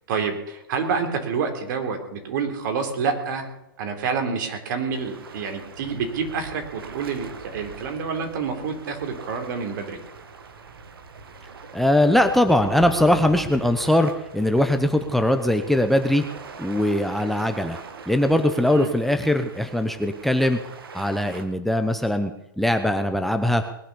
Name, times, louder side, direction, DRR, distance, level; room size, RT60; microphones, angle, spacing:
voice 1, 0.1-3.5 3.8-10.0 18.7-18.9, right 5 dB, 55° right, 5 dB, 3.9 m, -28 dB
sound 1, 4.9-21.5, right 4 dB, 80° right, 2.2 m, -42 dB
voice 2, 11.7-16.2 16.6-17.8 18.1-20.6 20.9-22.3 22.6-23.6, left 1 dB, ahead, 6 dB, 0.9 m, -21 dB
20.5 x 10.0 x 7.0 m, 0.85 s
hypercardioid pair, 135°, 12 cm